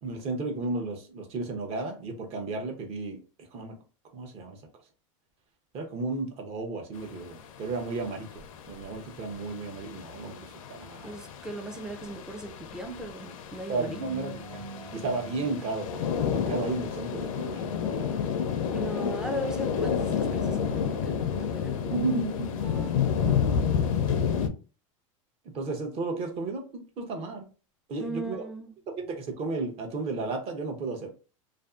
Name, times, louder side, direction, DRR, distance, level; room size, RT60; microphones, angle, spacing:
voice 1, 0.0-3.8 4.1-4.6 5.7-8.3 8.7-11.1 13.7-14.6 14.9-17.7 21.8-22.5 25.4-27.5 27.9-28.4 28.9-31.1, right 3 dB, 35° right, 0.7 m, -33 dB
sound 1, 7.0-24.5, left 7 dB, 85° left, 0.5 m, -30 dB
voice 2, 11.0-14.2 18.7-21.8 28.0-28.7, right 1 dB, 5° right, 0.4 m, -38 dB
sound 2, 13.8-19.7 20.0-21.2 22.4-22.9, right 3 dB, 75° right, 1.3 m, -46 dB
2.6 x 2.4 x 2.3 m
supercardioid pair, 135°, 17 cm